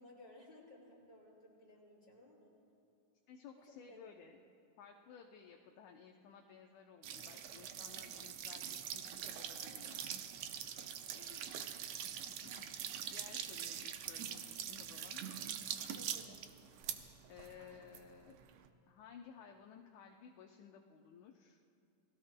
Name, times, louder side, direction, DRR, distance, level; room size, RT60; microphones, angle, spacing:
voice 1, 0.0-2.5 3.5-4.1 11.1-11.5 15.9-16.4, left 1 dB, 15° left, -7 dB, 4.9 m, -59 dB
voice 2, 3.3-4.4 4.8-10.2 12.0-15.2 17.3-18.4 18.9-21.6, left 7 dB, 75° left, 2 dB, 2.0 m, -57 dB
sound 1, 7.0-18.7, right 9 dB, 85° right, 1.4 m, -44 dB
29.5 x 20.0 x 2.2 m, 2.8 s
omnidirectional pair, 3.8 m